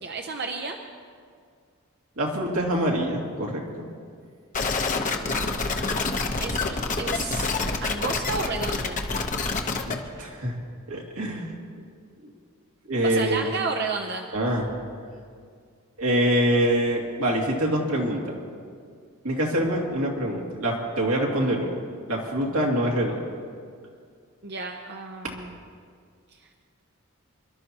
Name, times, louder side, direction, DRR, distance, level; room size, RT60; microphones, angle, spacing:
voice 1, 0.0-0.8 5.2-7.5 7.8-9.0 13.0-14.3 24.4-25.6 26.3-26.4, right 4 dB, 50° right, 3 dB, 0.7 m, -32 dB
voice 2, 2.2-3.9 9.5-10.5 10.9-11.5 12.2-12.3 12.8-13.5 14.3-14.7 16.0-18.4 19.2-21.7 22.1-23.2, right 1 dB, 80° right, -2 dB, 2.4 m, -25 dB
sound 1, 4.5-9.9, left 3 dB, 35° left, 0.9 m, -27 dB
26.5 x 12.5 x 2.9 m, 2.1 s
head